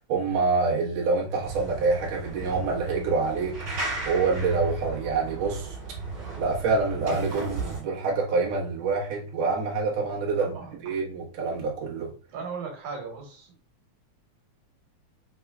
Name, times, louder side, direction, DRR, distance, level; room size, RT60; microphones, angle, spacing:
voice 1, 0.1-3.6 4.1-5.8 6.4-10.5 10.8-12.1, right 4 dB, 65° right, 2.3 m, -26 dB
sound 1, 1.4-7.8, right 3 dB, 45° right, 2.9 m, -34 dB
voice 2, 10.4-11.0 12.3-13.5, right 5 dB, 90° right, 2.7 m, -37 dB
5.9 x 3.0 x 2.3 m
omnidirectional pair, 3.4 m